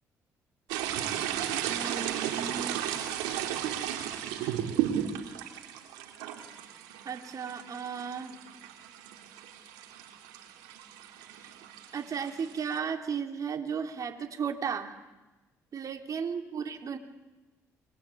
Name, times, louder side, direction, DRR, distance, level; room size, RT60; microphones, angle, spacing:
sound 1, 0.7-12.8, right 10 dB, 90° right, 3.3 m, -35 dB
voice 1, 1.7-2.8 7.1-8.4 11.4-11.5 11.9-14.9 15.7-17.0, right 6 dB, 50° right, 5 dB, 3.6 m, -35 dB
28.5 x 23.5 x 8.8 m, 1.1 s
supercardioid pair, 65°, 7 cm